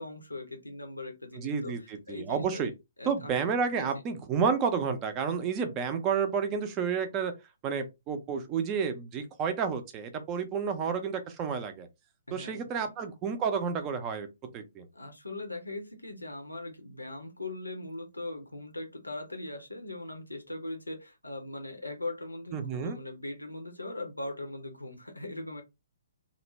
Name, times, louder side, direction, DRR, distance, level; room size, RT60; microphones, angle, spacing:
voice 1, 0.0-2.7 3.0-3.4 3.8-3.9 12.3-12.9 14.9-25.6, left 2 dB, 80° left, 0.7 m, -40 dB
voice 2, 1.4-2.7 3.1-7.3 7.6-11.9 12.3-14.3 14.5-14.9 22.5-23.0, right 6 dB, 20° right, 0.5 m, -30 dB
2.5 x 2.1 x 3.1 m
figure-of-eight pair, 125°, 0 cm